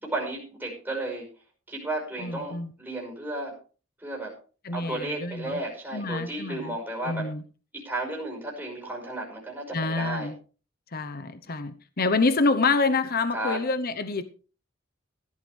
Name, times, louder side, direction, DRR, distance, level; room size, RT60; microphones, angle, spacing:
voice 1, 0.0-1.3 1.7-3.6 4.0-4.3 4.7-7.3 7.7-10.3 13.3-13.6, right 2 dB, 10° right, -3 dB, 5.6 m, -33 dB
voice 2, 2.2-2.7 4.6-5.6 5.9-6.8 7.0-7.4 9.7-10.4 10.9-14.2, left 3 dB, 50° left, 11 dB, 0.9 m, -27 dB
16.0 x 12.0 x 3.3 m, 0.37 s
head